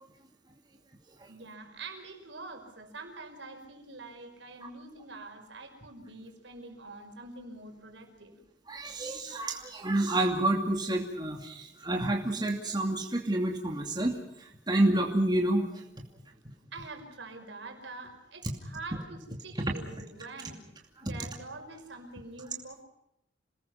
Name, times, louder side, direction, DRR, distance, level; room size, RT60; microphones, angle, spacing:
voice 1, 1.3-8.3 16.7-20.6 21.0-22.8, right 3 dB, 70° right, 4 dB, 5.5 m, -45 dB
voice 2, 8.7-15.8 19.6-19.7 21.0-21.1, right 1 dB, 25° right, 1 dB, 2.6 m, -29 dB
28.0 x 20.5 x 5.8 m, 0.84 s
head